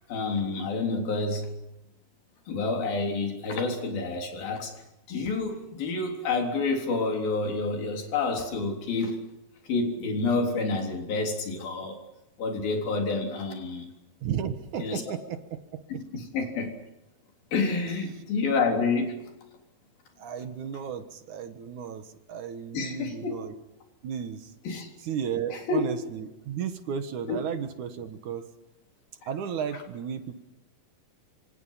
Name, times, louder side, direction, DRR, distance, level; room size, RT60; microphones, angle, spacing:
voice 1, 0.1-1.5 2.5-4.7 5.1-9.2 9.7-12.0 12.4-13.9 14.8-15.0 15.9-16.7 17.5-19.1 22.7-23.3 24.7-24.9 25.5-25.8 27.3-27.4, left 3 dB, 90° left, 2 dB, 5.5 m, -28 dB
voice 2, 14.2-15.8 20.2-23.5 24.0-24.5 25.0-28.4 29.3-30.4, right 8 dB, 65° right, 9 dB, 2.6 m, -34 dB
26.5 x 26.5 x 5.8 m, 0.96 s
omnidirectional pair, 4.1 m